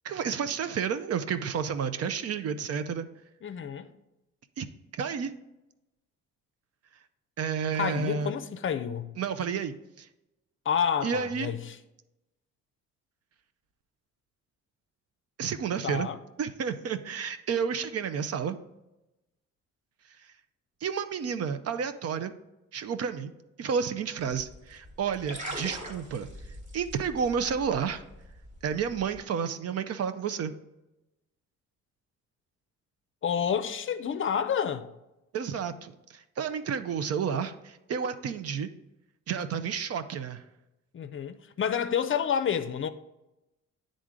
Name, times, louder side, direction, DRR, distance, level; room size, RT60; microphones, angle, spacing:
voice 1, 0.0-3.1 4.6-4.7 5.0-5.3 7.4-8.3 9.2-10.1 11.0-11.5 15.4-16.1 16.4-18.6 20.8-22.3 22.7-23.3 23.6-26.3 26.7-28.0 28.6-30.5 35.3-38.7 39.3-40.4, right 7 dB, 55° right, 0.6 m, -31 dB
voice 2, 3.4-3.9 7.7-9.1 10.7-11.8 15.8-16.2 33.2-34.9 40.9-42.9, left 8 dB, 40° left, 0.5 m, -29 dB
sound 1, 24.2-29.2, right 1 dB, 25° right, 1.3 m, -43 dB
9.5 x 3.8 x 3.7 m
cardioid pair, 90°, 30 cm